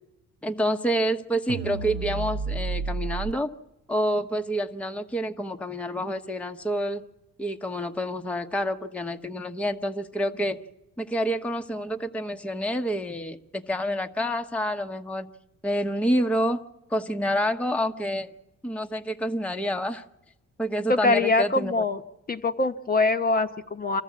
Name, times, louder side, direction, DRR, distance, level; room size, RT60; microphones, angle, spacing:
voice 1, 0.4-3.5 3.9-7.0 7.4-10.6 11.0-15.3 15.6-16.6 16.9-18.3 18.6-20.0 20.6-21.8, equal, 5° left, 5 dB, 0.9 m, -28 dB
sound 1, 1.5-3.3, right 5 dB, 60° right, 0.8 m, -30 dB
voice 2, 20.9-22.0 22.3-24.0, left 3 dB, 30° left, 7 dB, 0.9 m, -23 dB
26.5 x 14.0 x 8.4 m, 0.96 s
cardioid pair, 90°, 30 cm